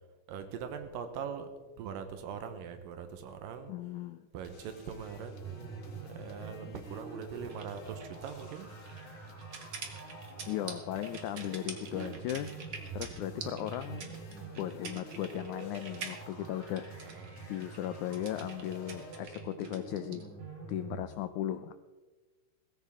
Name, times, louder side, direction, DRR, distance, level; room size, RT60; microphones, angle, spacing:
voice 1, 0.3-3.7 4.3-8.7 11.9-12.2 13.4-14.1 17.0-17.5, right 7 dB, 85° right, 7 dB, 2.7 m, -42 dB
voice 2, 3.7-4.3 5.8-5.9 10.5-12.5 12.9-14.1 14.6-16.9 17.5-20.3 20.7-21.7, left 12 dB, 80° left, 11 dB, 1.8 m, -37 dB
sound 1, 4.4-19.2, left 4 dB, 50° left, 1.4 m, -56 dB
sound 2, 5.1-21.1, right 3 dB, 65° right, 4.7 m, -46 dB
sound 3, 7.5-20.2, right 5 dB, 45° right, 1.5 m, -46 dB
17.5 x 15.0 x 3.7 m, 1.3 s
omnidirectional pair, 3.9 m